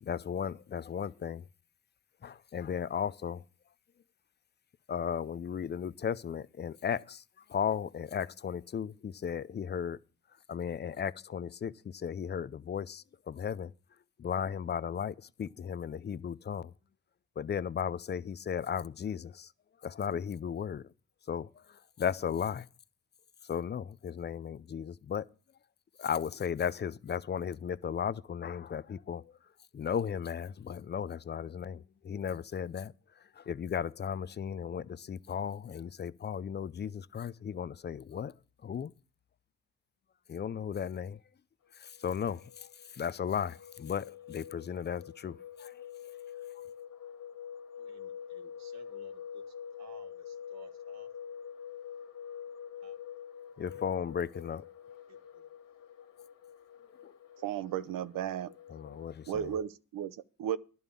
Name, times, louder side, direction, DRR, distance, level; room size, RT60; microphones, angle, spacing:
voice 1, 0.0-1.4 2.2-3.4 4.9-7.2 7.5-10.0 10.5-13.7 14.2-16.7 17.4-19.5 19.8-20.8 21.3-21.5 22.0-22.6 23.5-25.3 26.0-29.3 29.7-32.9 33.4-38.3 38.6-38.9 40.3-41.2 41.8-42.7 43.0-45.9 53.6-54.6 57.0-57.1 58.7-59.5, left 7 dB, 30° left, 0.5 m, -35 dB
sound 1, 41.8-59.6, left 8 dB, 65° left, 1.8 m, -47 dB
voice 2, 47.7-51.1 52.8-53.0 55.1-55.4, right 5 dB, 50° right, 1.6 m, -57 dB
voice 3, 57.4-58.5 59.3-60.6, right 9 dB, 75° right, 0.7 m, -34 dB
11.0 x 5.5 x 8.2 m
cardioid pair, 80°, 34 cm